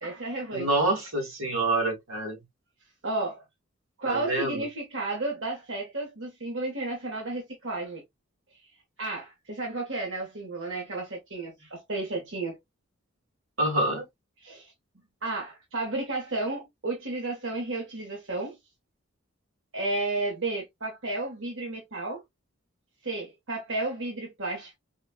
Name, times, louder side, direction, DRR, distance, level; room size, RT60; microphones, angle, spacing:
voice 1, 0.0-0.7 3.0-3.4 4.0-8.0 9.0-12.6 14.4-14.7 15.2-18.6 19.7-22.2 23.0-24.8, right 2 dB, 65° right, 1.3 m, -32 dB
voice 2, 0.5-2.4 4.1-4.6 13.6-14.0, right 2 dB, 85° right, 1.8 m, -27 dB
4.9 x 2.4 x 2.2 m
head